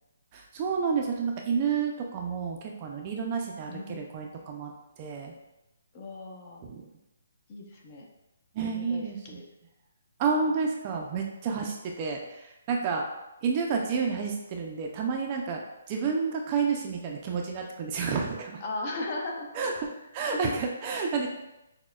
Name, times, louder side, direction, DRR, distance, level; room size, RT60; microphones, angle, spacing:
voice 1, 0.3-4.7 5.0-5.3 6.6-6.8 8.5-9.4 10.2-13.0 13.4-18.6 19.6-19.7 20.1-21.3, right 5 dB, 25° right, 1 dB, 0.4 m, -30 dB
voice 2, 3.7-4.1 5.9-6.6 7.5-8.1 8.6-9.4 18.6-19.5 20.3-20.5, left 2 dB, 30° left, 0 dB, 0.6 m, -37 dB
6.1 x 2.1 x 2.3 m, 0.93 s
hypercardioid pair, 160°, 0 cm